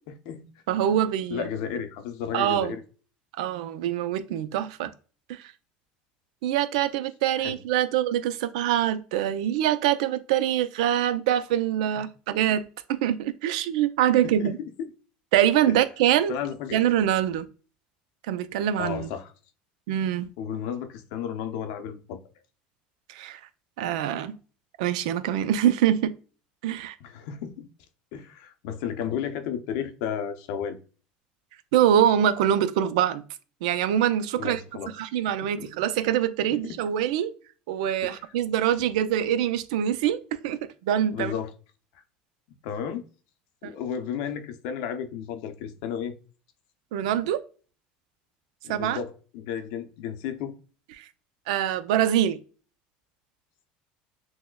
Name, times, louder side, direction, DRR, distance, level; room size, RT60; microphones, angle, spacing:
voice 1, 0.7-1.5 2.3-2.7 3.4-4.9 5.3-5.5 6.4-14.6 15.3-16.4 16.7-17.5 18.3-19.1 19.9-20.3 23.1-23.4 23.8-24.4 24.8-26.1 26.6-27.0 31.7-33.2 33.6-34.6 35.0-37.3 37.7-41.3 43.6-43.7 46.9-47.4 48.7-49.0 51.0-51.1 51.5-52.4, right 10 dB, 85° right, 0.4 m, -24 dB
voice 2, 1.3-2.8 7.4-7.6 11.9-12.0 14.2-14.5 14.8-14.9 16.3-16.8 18.8-19.3 20.4-22.2 27.0-27.7 28.1-30.8 34.4-34.9 35.6-35.7 36.5-36.8 38.0-38.3 41.1-41.5 42.6-43.0 43.6-46.1 48.6-50.5, left 8 dB, 75° left, 0.6 m, -33 dB
6.1 x 2.1 x 2.2 m
supercardioid pair, 110°, 4 cm